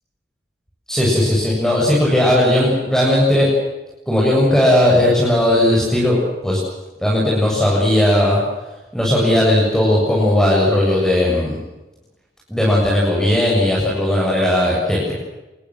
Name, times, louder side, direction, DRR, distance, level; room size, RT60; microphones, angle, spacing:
voice 1, 0.9-3.5 4.1-6.6 7.0-8.4 8.9-11.6 12.5-15.1, left 1 dB, 5° left, -5 dB, 7.4 m, -16 dB
26.5 x 21.0 x 7.7 m, 1.1 s
head